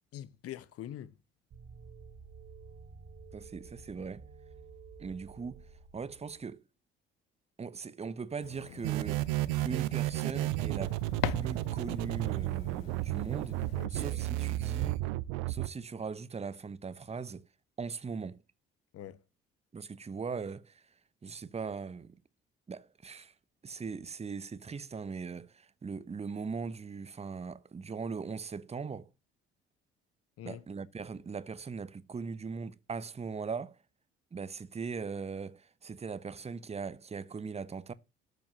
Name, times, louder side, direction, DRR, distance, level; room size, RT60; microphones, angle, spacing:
voice 1, 0.1-1.1 13.7-14.2 18.9-19.2 30.4-30.6, left 11 dB, 50° left, 1.2 m, -44 dB
sound 1, 1.5-6.5, right 5 dB, 45° right, 2.0 m, -51 dB
voice 2, 3.3-4.3 5.0-5.7 5.9-6.6 7.6-9.3 9.6-11.0 11.3-15.0 15.5-17.5 17.8-18.4 19.7-20.8 21.2-22.2 22.7-23.3 23.6-29.1 30.4-33.8 34.3-37.9, right 5 dB, 20° right, 0.9 m, -40 dB
sound 2, 8.4-13.9, left 15 dB, 70° left, 0.6 m, -42 dB
sound 3, 8.8-15.7, right 17 dB, 65° right, 0.8 m, -32 dB
13.0 x 7.1 x 7.6 m
figure-of-eight pair, 50°, 30 cm